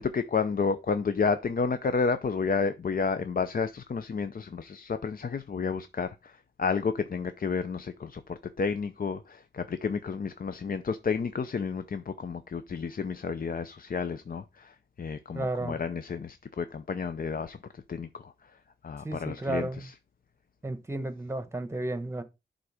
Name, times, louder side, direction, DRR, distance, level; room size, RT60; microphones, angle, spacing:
voice 1, 0.0-18.3 18.8-19.9, left 5 dB, 50° left, 0.6 m, -31 dB
voice 2, 15.3-15.8 19.0-19.9 20.6-22.2, right 2 dB, 15° right, 1.1 m, -33 dB
11.5 x 3.9 x 4.9 m
wide cardioid pair, 150°, 20 cm